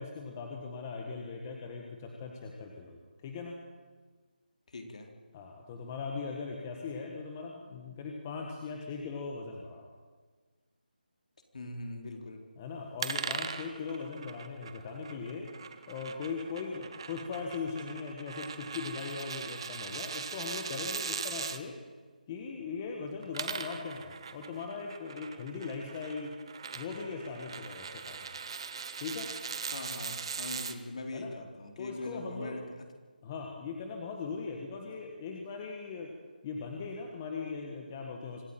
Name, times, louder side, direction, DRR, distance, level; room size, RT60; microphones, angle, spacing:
voice 1, 0.0-3.6 5.3-10.0 12.6-15.5 15.9-21.7 22.3-26.3 26.7-28.4 29.0-29.3 31.1-31.3 31.8-32.6 33.2-36.1 36.4-38.5, left 5 dB, 15° left, 1 dB, 1.6 m, -39 dB
voice 2, 4.7-5.1 11.5-12.4 29.7-32.9, left 2 dB, 45° left, 3 dB, 4.1 m, -41 dB
sound 1, 13.0-21.6 23.1-30.8, right 6 dB, 30° right, 1.2 m, -40 dB
25.5 x 14.5 x 9.1 m, 1.4 s
figure-of-eight pair, 170°, 5 cm